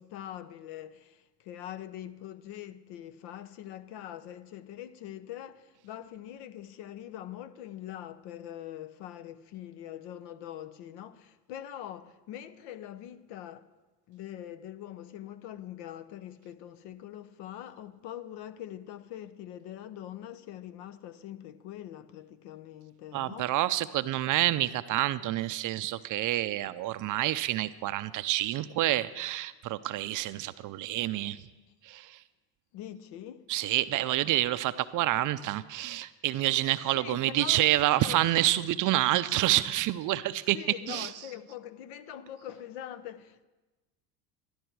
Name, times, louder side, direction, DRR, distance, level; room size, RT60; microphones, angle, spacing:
voice 1, 0.0-13.7 14.1-23.5 32.7-33.5 34.2-34.4 36.9-38.2 40.5-43.4, left 11 dB, 60° left, 0.8 m, -43 dB
voice 2, 23.1-31.4 31.8-32.2 33.5-40.6 40.9-41.1, right 15 dB, 40° right, 0.5 m, -28 dB
13.0 x 12.0 x 4.7 m
hypercardioid pair, 85°, 48 cm